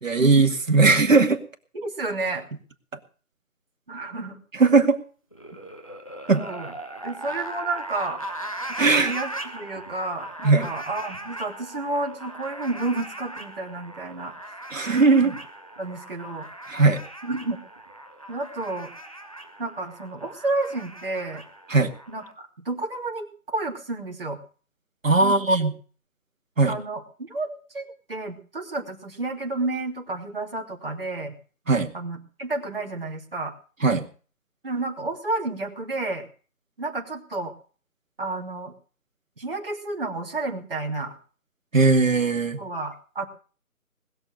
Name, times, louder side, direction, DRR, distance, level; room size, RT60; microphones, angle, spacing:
voice 1, 0.0-1.4 4.6-5.0 6.3-6.4 8.8-9.1 10.4-10.7 14.7-15.3 16.7-17.0 21.7-21.9 25.0-25.7 26.6-26.7 31.7-31.9 33.8-34.1 41.7-42.6, right 3 dB, 60° right, 5 dB, 2.3 m, -18 dB
voice 2, 1.7-2.5 3.9-4.4 5.5-5.6 6.4-6.7 7.0-8.2 8.7-14.3 15.1-15.4 15.8-16.5 17.2-17.6 18.3-18.9 19.6-21.4 22.1-24.4 25.2-25.7 26.7-31.3 31.9-33.5 34.6-36.3 36.8-37.5 38.2-38.7 39.4-41.1 42.6-43.2, right 2 dB, 40° right, 0 dB, 3.0 m, -31 dB
sound 1, 5.3-22.3, right 1 dB, 25° left, 0.9 m, -39 dB
20.5 x 7.1 x 7.8 m, 0.41 s
figure-of-eight pair, 175°, 44 cm